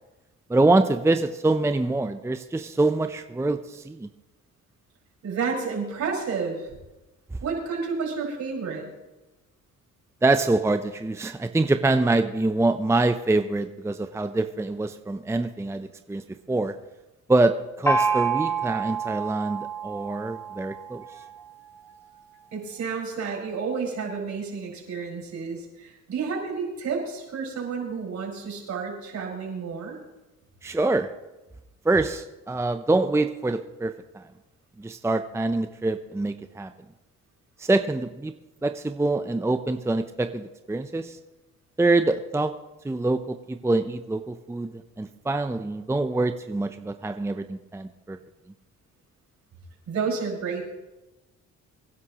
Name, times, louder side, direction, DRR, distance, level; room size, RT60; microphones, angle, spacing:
voice 1, 0.5-4.1 10.2-16.2 16.5-16.8 17.3-21.0 30.6-31.1 31.8-34.2 34.8-36.7 37.6-38.3 38.6-41.2 41.8-42.5 42.8-48.2, right 2 dB, 10° right, 8 dB, 0.6 m, -25 dB
voice 2, 5.2-6.8 7.4-8.9 22.5-30.0 49.9-50.6, right 5 dB, 65° right, -2 dB, 5.4 m, -30 dB
Gong, 17.9-21.4, right 5 dB, 10° left, 3.2 m, -28 dB
24.5 x 11.0 x 3.0 m, 1.0 s
cardioid pair, 90°, 30 cm